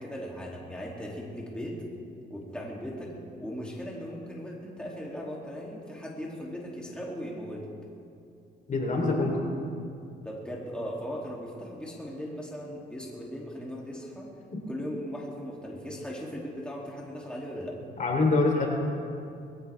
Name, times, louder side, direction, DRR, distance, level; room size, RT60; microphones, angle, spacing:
voice 1, 0.0-1.8 2.3-3.1 3.4-7.6 10.2-14.3 14.7-17.8, equal, 5° left, -4 dB, 2.9 m, -38 dB
voice 2, 8.7-9.4 18.0-18.7, left 3 dB, 40° left, 0 dB, 3.7 m, -24 dB
21.5 x 16.0 x 3.6 m, 2.6 s
cardioid pair, 90°, 20 cm